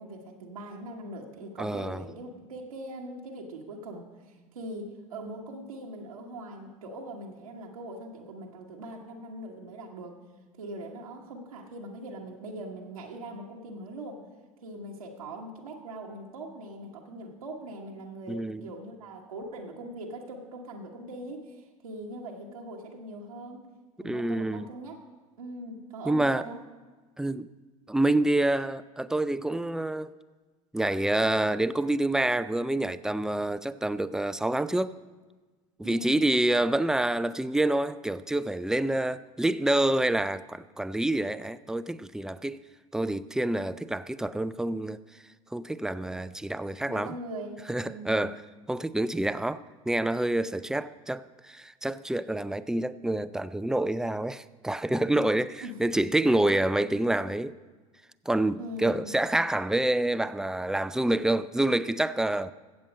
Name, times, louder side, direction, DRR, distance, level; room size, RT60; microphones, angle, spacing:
voice 1, 0.0-10.2 10.6-14.2 14.6-23.7 24.0-25.0 25.4-26.6 35.8-36.3 46.9-48.3 55.6-55.8 58.6-59.1, right 1 dB, 90° right, 1.3 m, -41 dB
voice 2, 1.6-2.0 18.3-18.7 24.0-24.7 26.1-26.4 27.2-27.5 27.9-30.1 30.7-34.9 35.8-42.6 42.9-45.0 45.5-47.1 47.7-48.4 48.7-57.5 58.3-62.5, right 1 dB, 5° right, 0.4 m, -27 dB
15.5 x 7.5 x 5.2 m
hypercardioid pair, 80°, 18 cm